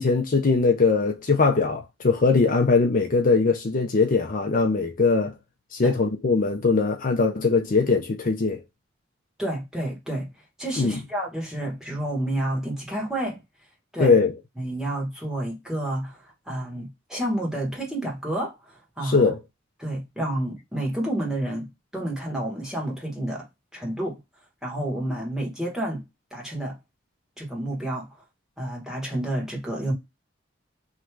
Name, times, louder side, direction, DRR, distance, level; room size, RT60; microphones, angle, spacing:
voice 1, 0.0-5.3 5.7-8.6 10.8-11.0 14.0-14.3 19.0-19.4, left 4 dB, 45° left, 0.5 m, -21 dB
voice 2, 9.4-10.3 10.6-13.4 13.9-14.2 14.6-19.3 19.8-21.7 21.9-23.4 23.7-24.2 24.6-26.0 26.3-26.8 27.4-28.1 28.6-29.9, right 1 dB, 5° right, 1.4 m, -30 dB
3.2 x 2.6 x 4.5 m
head